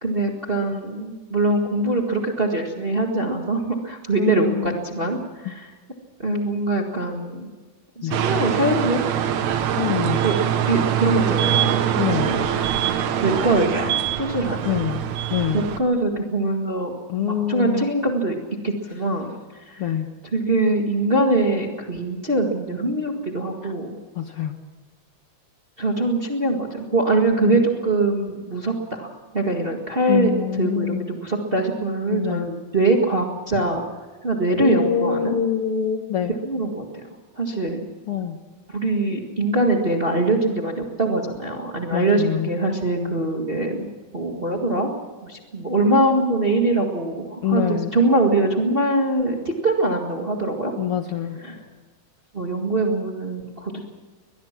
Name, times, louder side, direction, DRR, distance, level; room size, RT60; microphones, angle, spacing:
voice 1, 0.0-5.7 6.2-7.5 7.9-9.1 10.2-10.3 10.7-11.8 12.1-12.5 13.2-14.8 15.5-16.9 17.2-18.4 18.6-19.9 20.2-23.9 25.8-29.1 29.3-33.8 34.2-35.4 36.4-37.0 37.4-37.8 38.7-43.9 44.1-44.9 45.2-49.4 49.6-50.7 51.3-51.6 52.3-53.8, right 2 dB, 25° right, 2 dB, 1.4 m, -23 dB
voice 2, 4.2-4.7 8.0-8.2 9.8-10.2 12.0-12.3 14.6-15.0 15.3-15.7 17.1-17.9 19.8-20.1 23.6-23.7 24.2-24.5 27.4-27.6 30.1-31.1 32.1-32.5 34.6-36.3 38.1-38.4 41.9-42.5 47.4-47.9 50.8-51.4, left 9 dB, 60° left, 6 dB, 1.7 m, -25 dB
sound 1, 8.1-15.8, right 9 dB, 70° right, 2.5 m, -23 dB
22.5 x 21.0 x 5.9 m, 1.4 s
omnidirectional pair, 3.5 m